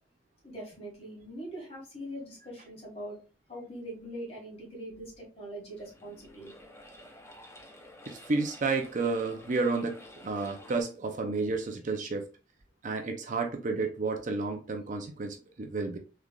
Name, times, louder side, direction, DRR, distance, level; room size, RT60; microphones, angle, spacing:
voice 1, 0.4-3.2 3.5-6.5, equal, 35° left, 1.9 m, -42 dB
sound 1, 5.7-10.8, left 1 dB, 15° left, 0.6 m, -51 dB
voice 2, 8.1-12.3 12.8-16.0, right 3 dB, 40° right, 0.5 m, -31 dB
3.7 x 3.2 x 2.3 m
head